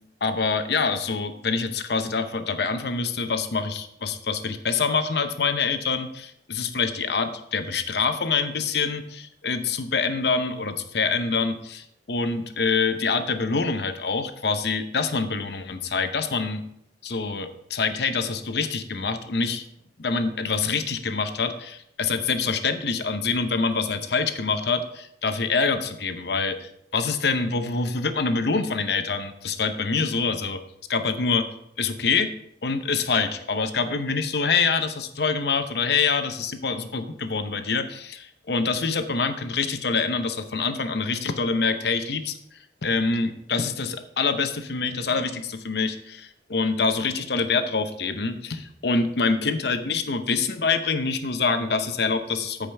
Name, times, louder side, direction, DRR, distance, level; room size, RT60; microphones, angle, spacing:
voice 1, 0.2-16.6 17.0-19.6 20.0-30.6 30.9-31.5 31.8-32.3 32.6-42.3 42.8-52.7, left 4 dB, 70° left, 8 dB, 0.8 m, -25 dB
14.5 x 5.0 x 3.4 m, 0.73 s
head